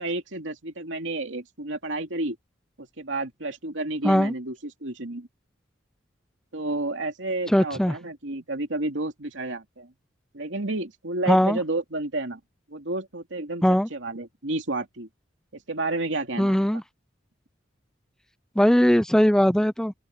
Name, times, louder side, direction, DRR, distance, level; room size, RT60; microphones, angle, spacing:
voice 1, 0.0-2.4 2.8-5.3 6.5-9.9 10.3-12.4 12.7-13.6 13.9-15.1 15.5-16.6, right 2 dB, 80° right, 2.7 m, -31 dB
voice 2, 7.5-7.9 11.3-11.6 13.6-13.9 16.4-16.8 18.6-19.9, equal, 5° left, 0.5 m, -20 dB
head